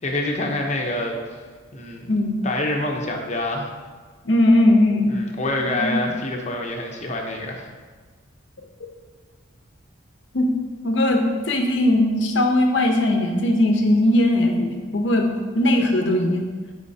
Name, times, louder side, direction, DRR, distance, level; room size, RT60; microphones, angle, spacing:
voice 1, 0.0-1.2 1.7-2.1 2.4-3.7 5.1-7.7, left 1 dB, 35° left, 1 dB, 0.9 m, -26 dB
voice 2, 4.2-5.1 5.6-6.0 10.3-10.5 10.8-15.3 15.5-16.4, left 1 dB, 60° left, 3 dB, 0.8 m, -19 dB
9.6 x 5.1 x 2.8 m, 1.5 s
head